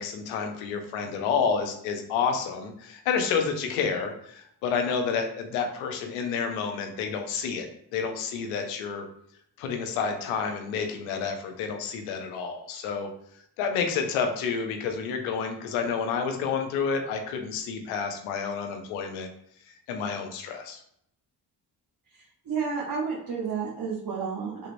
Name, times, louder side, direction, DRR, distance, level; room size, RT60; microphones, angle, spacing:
voice 1, 0.0-9.1 9.6-13.1 13.6-19.3 19.9-20.8, left 6 dB, 85° left, 5 dB, 0.6 m, -29 dB
voice 2, 22.2-24.7, right 5 dB, 45° right, -5 dB, 1.0 m, -31 dB
3.4 x 2.8 x 2.6 m, 0.71 s
hypercardioid pair, 45°, 47 cm